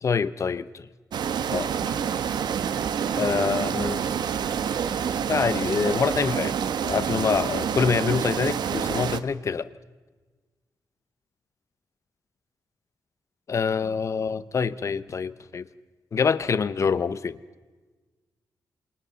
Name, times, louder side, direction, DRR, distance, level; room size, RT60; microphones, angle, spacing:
voice 1, 0.0-0.9 1.5-1.7 3.2-4.0 5.3-6.5 6.8-9.6 13.5-15.7 16.1-17.4, left 5 dB, 45° left, 15 dB, 0.8 m, -25 dB
sound 1, 1.1-9.2, right 7 dB, 80° right, 1.0 m, -27 dB
28.5 x 27.0 x 4.1 m, 1.3 s
wide cardioid pair, 140°, 7 cm